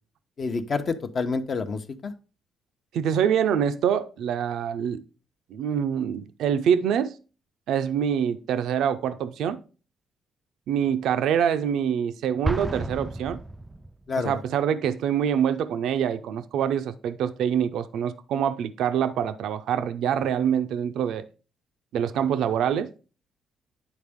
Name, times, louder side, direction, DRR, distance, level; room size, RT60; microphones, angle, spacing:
voice 1, 0.4-2.1 14.1-14.4, left 4 dB, 45° left, 0.8 m, -28 dB
voice 2, 2.9-5.0 5.5-7.1 7.7-9.6 10.7-13.4 14.2-21.2 21.9-22.9, right 8 dB, 80° right, 0.4 m, -25 dB
Explosion, 12.4-14.2, right 2 dB, 15° right, 0.3 m, -31 dB
9.9 x 4.3 x 3.5 m
cardioid pair, 90°, 0 cm